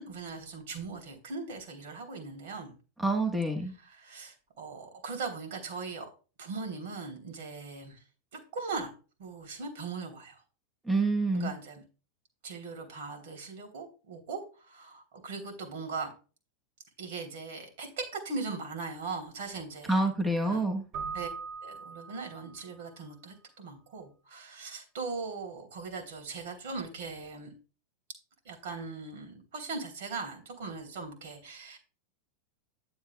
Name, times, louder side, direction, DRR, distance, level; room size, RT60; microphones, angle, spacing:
voice 1, 0.0-2.7 3.8-6.1 6.4-8.0 8.3-8.9 9.2-10.4 11.3-11.8 12.4-16.1 17.0-20.0 20.4-20.6 21.1-21.3 21.6-27.5 28.4-31.8, right 4 dB, 70° right, 3 dB, 3.3 m, -39 dB
voice 2, 3.0-3.7 10.9-11.5 19.9-20.8, right 2 dB, 10° right, 3 dB, 1.3 m, -27 dB
Keyboard (musical), 20.9-22.7, right 5 dB, 45° right, 2.7 m, -40 dB
10.5 x 8.0 x 2.3 m, 0.35 s
hypercardioid pair, 125°, 0 cm